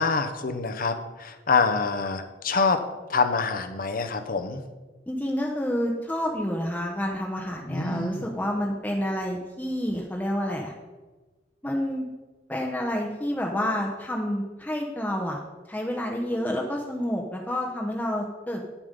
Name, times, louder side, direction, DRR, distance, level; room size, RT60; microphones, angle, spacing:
voice 1, 0.0-2.8 3.1-4.6 7.7-8.2, left 4 dB, 50° left, 8 dB, 0.9 m, -26 dB
voice 2, 5.1-10.7 11.6-12.0 12.5-15.4 15.7-18.6, equal, 10° left, -1 dB, 0.9 m, -29 dB
9.6 x 7.3 x 5.2 m, 1.2 s
head